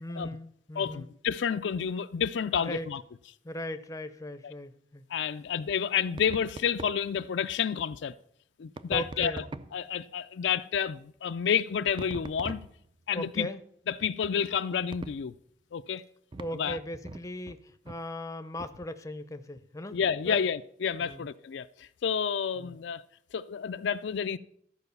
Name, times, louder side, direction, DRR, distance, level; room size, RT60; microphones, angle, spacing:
voice 1, 0.0-1.1 2.6-2.9 3.4-5.1 8.9-9.5 13.1-13.6 16.4-20.0 20.2-20.4 21.0-21.3 22.6-22.8, equal, 20° left, 0.6 m, -38 dB
voice 2, 0.8-3.0 4.4-4.5 5.1-8.1 8.6-9.4 9.7-12.6 13.1-13.5 13.9-15.3 15.7-16.0 16.5-16.8 19.9-23.0 23.3-24.4, left 7 dB, 75° left, 0.4 m, -30 dB
sound 1, 6.1-7.0 8.8-9.9 12.0-13.0 14.0-14.3 14.9-15.3 16.3-17.6 17.9-18.0 18.6-18.8, right 2 dB, 25° right, 0.4 m, -42 dB
13.0 x 4.8 x 6.8 m
head